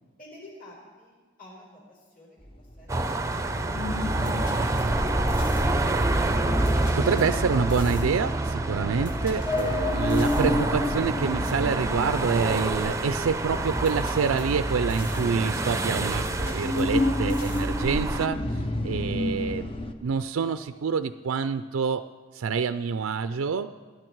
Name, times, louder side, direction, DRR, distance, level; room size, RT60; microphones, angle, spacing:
voice 1, 0.2-1.1 1.4-2.9, left 1 dB, 40° left, -2 dB, 4.7 m, -51 dB
sound 1, 2.4-19.9, left 2 dB, 25° left, 0.7 m, -32 dB
sound 2, 2.9-18.3, right 2 dB, 15° right, 0.6 m, -28 dB
sound 3, 3.8-18.3, equal, 60° left, 3.1 m, -35 dB
voice 2, 6.8-19.7 20.0-22.0 22.3-23.7, right 5 dB, 80° right, 11 dB, 0.4 m, -27 dB
18.5 x 11.5 x 4.6 m, 1.4 s
head